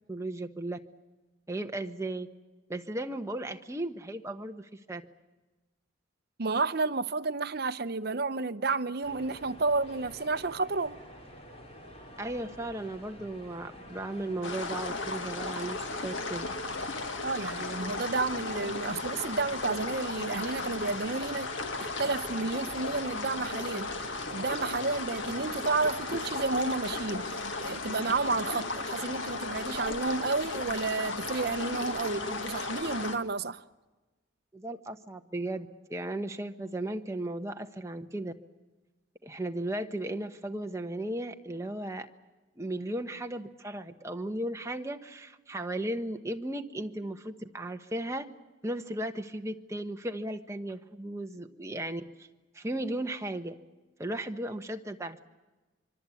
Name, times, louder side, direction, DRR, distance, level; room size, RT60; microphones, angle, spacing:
voice 1, 0.1-0.8 1.5-2.3 2.7-5.0 12.2-16.5 34.5-38.3 39.2-42.1 42.6-48.3 48.6-52.3 52.5-53.5 54.0-55.2, right 1 dB, 15° right, 1.1 m, -36 dB
voice 2, 6.4-11.0 17.2-21.5 22.0-23.9 24.3-27.3 27.6-33.6, right 3 dB, 50° right, 0.8 m, -31 dB
sound 1, 9.0-27.4, equal, 30° left, 3.7 m, -49 dB
sound 2, 14.4-33.2, left 3 dB, 70° left, 1.9 m, -35 dB
25.0 x 24.0 x 8.4 m
head